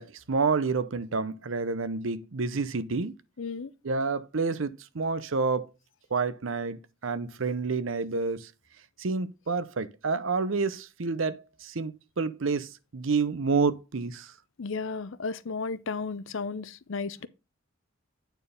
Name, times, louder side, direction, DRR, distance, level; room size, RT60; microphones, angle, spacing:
voice 1, 0.0-3.2 3.8-5.7 6.1-8.5 9.0-14.3, right 4 dB, 70° right, 0.7 m, -29 dB
voice 2, 3.4-3.7 14.6-17.3, left 4 dB, 70° left, 0.6 m, -34 dB
8.9 x 4.5 x 5.1 m
head